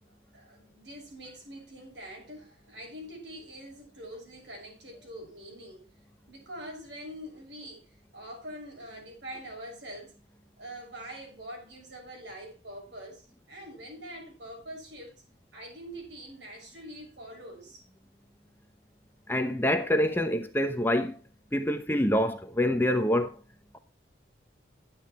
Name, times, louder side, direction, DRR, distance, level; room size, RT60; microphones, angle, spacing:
voice 1, 0.3-5.9 6.3-10.2 10.6-15.1 15.5-17.8, equal, 75° right, 6.5 m, -44 dB
voice 2, 19.3-21.2 21.5-23.3, left 1 dB, 10° left, 0.9 m, -26 dB
11.5 x 8.7 x 4.4 m
head